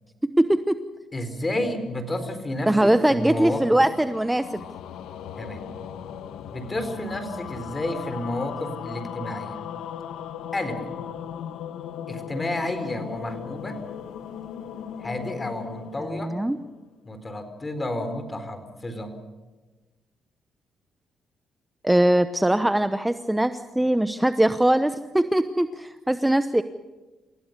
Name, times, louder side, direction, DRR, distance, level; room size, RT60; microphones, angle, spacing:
voice 1, 0.2-0.8 2.7-4.6 16.2-16.6 21.8-26.6, right 1 dB, 10° right, 11 dB, 0.9 m, -21 dB
voice 2, 1.1-3.8 5.4-5.6 6.5-9.7 10.5-10.8 12.1-13.8 15.0-16.3 17.0-19.2, left 1 dB, 20° left, 9 dB, 4.3 m, -31 dB
sound 1, 2.5-16.9, left 9 dB, 85° left, 1.3 m, -38 dB
28.0 x 16.5 x 6.8 m, 1.2 s
cardioid pair, 90°, 0 cm